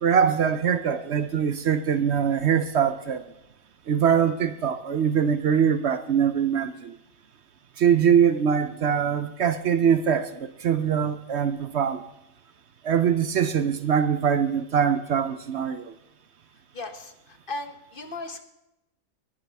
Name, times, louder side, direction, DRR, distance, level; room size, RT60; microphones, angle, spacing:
voice 1, 0.0-3.2 3.9-7.0 7.8-12.0 12.8-15.9, right 8 dB, 60° right, 12 dB, 1.0 m, -23 dB
voice 2, 16.7-18.4, left 2 dB, 45° left, 8 dB, 1.2 m, -36 dB
19.5 x 11.5 x 3.5 m, 0.89 s
omnidirectional pair, 1.4 m